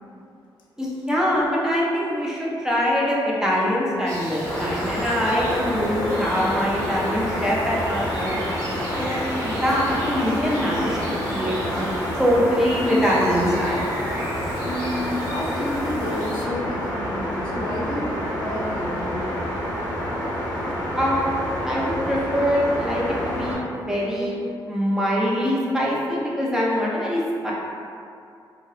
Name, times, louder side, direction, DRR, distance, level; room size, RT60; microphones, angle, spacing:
voice 1, 0.8-8.4 9.0-11.9 12.2-13.8 20.9-23.6 23.9-24.4 24.7-27.5, equal, 5° right, -5 dB, 0.4 m, -23 dB
sound 1, 4.0-16.4, right 1 dB, 40° right, 0.9 m, -35 dB
sound 2, 4.4-23.6, equal, 15° left, 0.7 m, -28 dB
voice 2, 14.6-19.6, left 1 dB, 75° left, -4 dB, 0.5 m, -31 dB
2.7 x 2.1 x 2.3 m, 2.5 s
wide cardioid pair, 170°, 8 cm